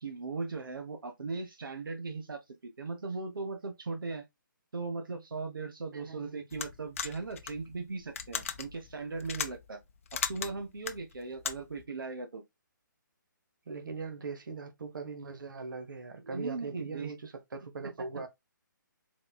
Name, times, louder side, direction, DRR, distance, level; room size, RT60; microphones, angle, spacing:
voice 1, 0.0-4.3 4.7-9.8 10.1-12.4 16.2-17.1 17.8-17.9, right 4 dB, 90° right, 1.1 m, -38 dB
voice 2, 5.9-6.5 13.7-18.3, right 4 dB, 70° right, 1.3 m, -41 dB
sound 1, 6.5-11.8, left 7 dB, 40° left, 0.5 m, -38 dB
4.2 x 3.8 x 2.3 m
hypercardioid pair, 165°, 11 cm